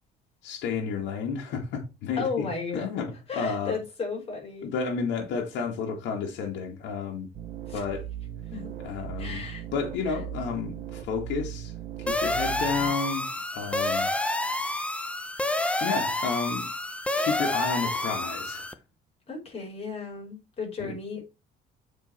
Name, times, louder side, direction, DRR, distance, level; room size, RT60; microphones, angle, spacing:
voice 1, 0.4-3.8 4.6-7.3 7.7-8.1 8.8-9.5 9.7-11.7 12.0-14.1 15.8-16.7 17.2-18.7 20.8-20.9, left 5 dB, 80° left, 2.2 m, -31 dB
voice 2, 2.2-2.9 3.3-4.7 7.7-7.8 8.5-8.7 9.2-9.6 19.3-21.2, left 4 dB, 35° left, 4.9 m, -34 dB
sound 1, 7.3-12.9, right 11 dB, 55° right, 1.7 m, -38 dB
sound 2, 12.1-18.7, left 1 dB, 5° left, 0.8 m, -29 dB
7.4 x 4.8 x 4.3 m
cardioid pair, 115°, 19 cm